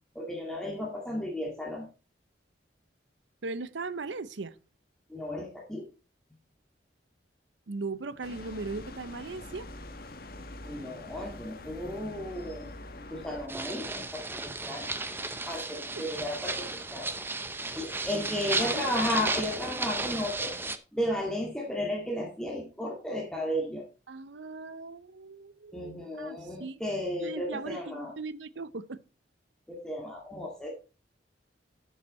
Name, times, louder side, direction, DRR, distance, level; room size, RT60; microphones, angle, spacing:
voice 1, 0.1-1.9 5.1-5.9 10.6-12.7 13.1-14.9 15.5-17.1 17.8-20.6 20.9-23.9 25.7-28.1 29.7-30.7, left 1 dB, 5° left, 2.0 m, -34 dB
voice 2, 3.4-4.5 7.7-9.7 15.7-16.0 18.1-18.3 18.6-18.8 24.1-26.8 27.2-29.0, right 3 dB, 80° right, 0.7 m, -38 dB
sound 1, 8.2-13.5, left 1 dB, 55° left, 1.5 m, -44 dB
sound 2, 13.5-20.8, right 3 dB, 10° right, 0.7 m, -34 dB
11.0 x 7.1 x 4.2 m
head